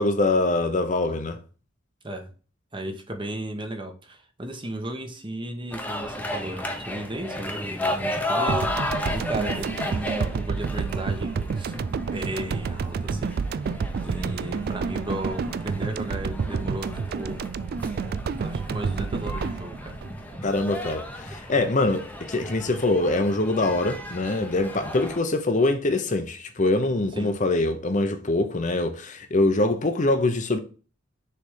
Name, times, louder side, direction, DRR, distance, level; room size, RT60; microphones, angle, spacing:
voice 1, 0.0-1.4 20.4-30.6, left 2 dB, 40° left, 0.8 m, -24 dB
voice 2, 2.7-8.7 9.1-13.4 14.0-17.4 18.4-20.0 27.1-27.3, right 1 dB, 25° right, 1.0 m, -35 dB
sound 1, 5.7-25.2, left 1 dB, 10° left, 0.8 m, -34 dB
sound 2, 8.5-20.9, right 5 dB, 50° right, 0.3 m, -29 dB
6.7 x 3.4 x 4.9 m
head